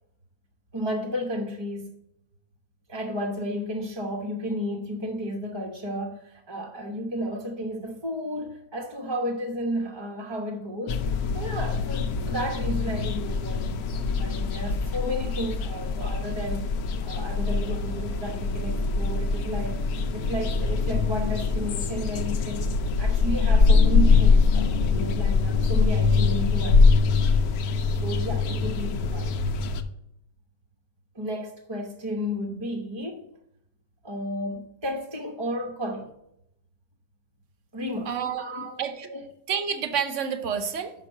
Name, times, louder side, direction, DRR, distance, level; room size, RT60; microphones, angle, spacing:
voice 1, 0.7-2.0 2.9-16.7 17.0-19.8 20.1-22.7 23.0-27.4 28.0-29.3 31.1-33.3 34.0-36.1 37.7-38.8 39.1-39.3, equal, 20° right, 0.7 m, -33 dB
sound 1, 10.9-29.8, left 4 dB, 70° left, 1.1 m, -23 dB
voice 2, 38.0-38.4 38.8-39.1 39.5-40.9, right 7 dB, 55° right, 1.0 m, -28 dB
5.9 x 5.7 x 6.5 m
omnidirectional pair, 1.7 m